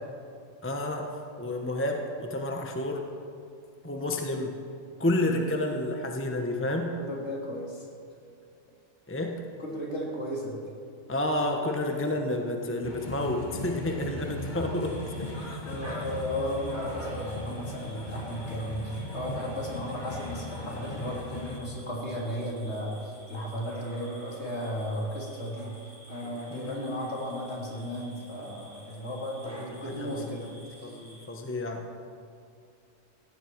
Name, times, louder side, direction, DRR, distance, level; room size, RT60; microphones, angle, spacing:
voice 1, 0.6-1.1 1.4-3.1 3.8-4.6 5.0-7.0 9.1-9.4 11.1-15.6 26.5-26.9 29.4-30.5 30.8-31.9, left 1 dB, 10° left, 2 dB, 1.0 m, -30 dB
voice 2, 7.0-7.9 9.6-10.6 11.9-12.0 15.6-25.7 26.1-30.5 30.8-31.0, equal, 55° left, -3 dB, 3.6 m, -35 dB
sound 1, 12.8-21.6, left 2 dB, 35° left, 1.8 m, -38 dB
sound 2, 14.8-31.3, equal, 10° right, 4.3 m, -47 dB
18.5 x 15.5 x 4.6 m, 2.4 s
omnidirectional pair, 1.3 m